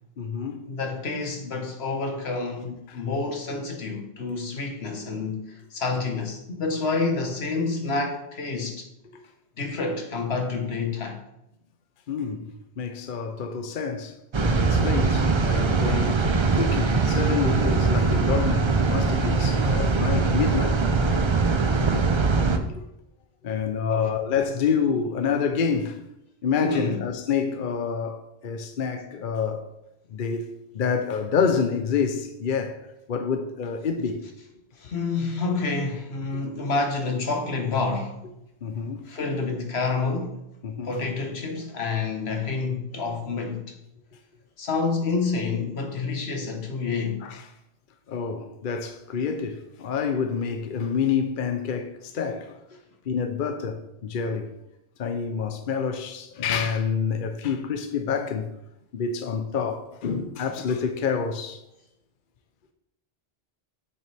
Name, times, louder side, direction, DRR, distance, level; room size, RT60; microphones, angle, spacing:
voice 1, 0.2-0.7 2.9-3.0 9.1-9.2 12.1-20.8 22.7-22.8 23.4-26.0 26.4-29.7 30.1-32.8 33.1-34.2 38.6-39.1 40.6-40.9 47.2-47.4 48.1-52.6 53.1-54.5 55.0-58.5 58.9-61.6, left 6 dB, 60° left, 0.8 m, -28 dB
voice 2, 0.7-8.9 9.6-11.2 23.9-24.1 26.6-27.0 34.8-38.3 39.0-40.4 40.8-43.8 44.6-47.3 60.6-60.7, left 4 dB, 85° left, 1.5 m, -28 dB
sound 1, 14.3-22.6, right 4 dB, 35° right, 0.6 m, -22 dB
7.9 x 7.1 x 3.4 m
omnidirectional pair, 1.0 m